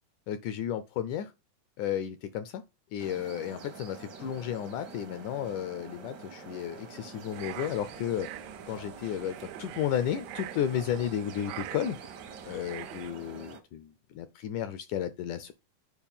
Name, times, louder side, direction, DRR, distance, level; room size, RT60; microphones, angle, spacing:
voice 1, 0.3-1.3 1.8-2.6 2.9-12.0 12.5-15.5, left 10 dB, 80° left, 1.8 m, -33 dB
sound 1, 3.0-13.6, right 4 dB, 65° right, 1.0 m, -47 dB
sound 2, 7.3-13.1, right 15 dB, 90° right, 2.4 m, -44 dB
7.2 x 4.8 x 5.5 m
omnidirectional pair, 4.2 m